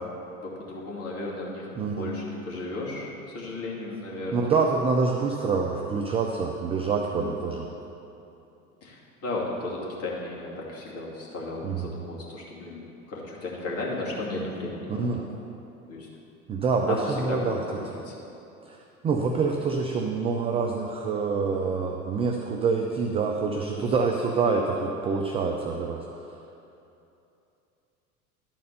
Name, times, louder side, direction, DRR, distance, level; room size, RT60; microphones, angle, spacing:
voice 1, 0.4-1.7 2.0-4.5 7.1-7.3 8.8-15.3 15.9-16.1 16.9-18.2, left 2 dB, 35° left, -4 dB, 2.4 m, -34 dB
voice 2, 1.8-2.1 4.3-7.7 11.6-11.9 14.9-15.2 16.5-17.6 18.7-18.8 19.0-26.0, right 4 dB, 15° right, 2 dB, 0.3 m, -26 dB
11.5 x 4.4 x 6.7 m, 2.8 s
figure-of-eight pair, 80°, 44 cm